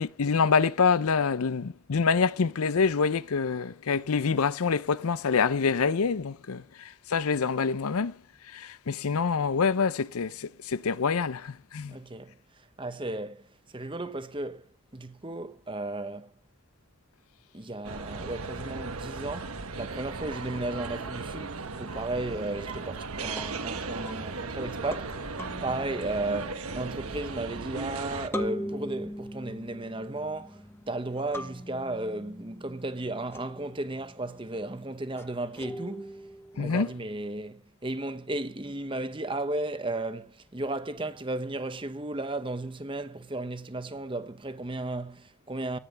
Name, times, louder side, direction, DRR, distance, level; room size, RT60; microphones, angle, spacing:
voice 1, 0.0-8.2 8.5-11.9 36.6-36.9, left 5 dB, 85° left, 0.6 m, -26 dB
voice 2, 11.9-13.5 13.7-14.7 14.9-16.3 17.5-25.3 25.6-45.8, right 2 dB, 25° right, 0.9 m, -35 dB
sound 1, 17.8-28.3, right 4 dB, 85° right, 1.3 m, -36 dB
sound 2, 21.5-37.0, equal, 10° left, 0.9 m, -42 dB
14.0 x 10.0 x 6.8 m
head